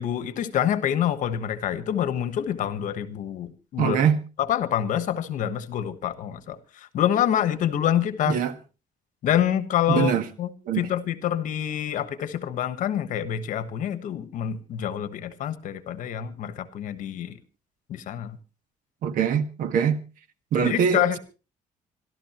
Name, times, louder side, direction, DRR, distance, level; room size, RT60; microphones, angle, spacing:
voice 1, 0.0-4.0 4.5-8.4 9.2-10.1 10.4-10.5 10.7-17.4 17.9-18.4 20.6-21.2, left 10 dB, 65° left, 1.3 m, -26 dB
voice 2, 3.8-4.2 8.2-8.5 9.9-10.2 10.6-10.9 19.0-20.0 20.5-21.2, right 7 dB, 80° right, 1.5 m, -23 dB
26.5 x 12.5 x 3.0 m
cardioid pair, 170°, 14 cm